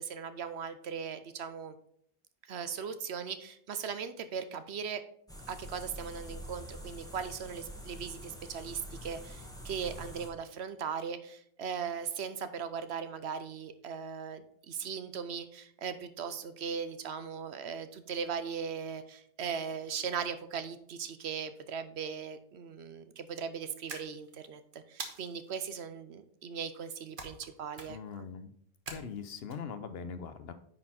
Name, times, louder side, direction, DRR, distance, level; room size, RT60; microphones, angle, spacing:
voice 1, 0.0-1.8 2.5-5.0 5.5-28.0, right 6 dB, 75° right, 11 dB, 1.0 m, -38 dB
sound 1, 5.3-10.3, equal, 5° left, 1.1 m, -46 dB
sound 2, 23.9-24.5 25.0-25.6 27.2-27.5 27.7-28.2 28.9-29.5, right 3 dB, 50° right, 1.3 m, -44 dB
voice 2, 27.9-28.5 28.9-30.5, left 6 dB, 65° left, 11 dB, 0.9 m, -41 dB
9.8 x 4.3 x 4.3 m, 0.66 s
omnidirectional pair, 1.2 m